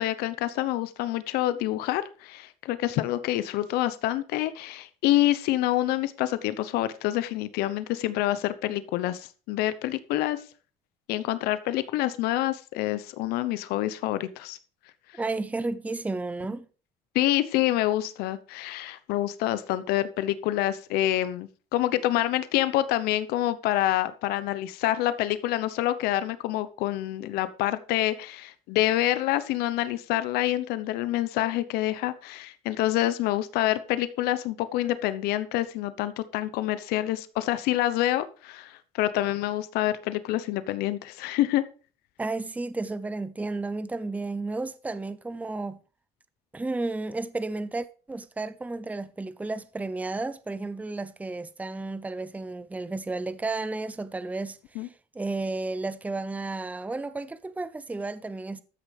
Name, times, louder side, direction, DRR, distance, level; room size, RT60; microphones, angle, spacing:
voice 1, 0.0-10.4 11.1-14.6 17.1-41.6 54.7-54.9, left 14 dB, 85° left, 0.9 m, -27 dB
voice 2, 15.1-16.7 42.2-45.8 46.5-58.6, right 3 dB, 10° right, 0.6 m, -32 dB
14.0 x 6.4 x 4.9 m
cardioid pair, 115°, 16 cm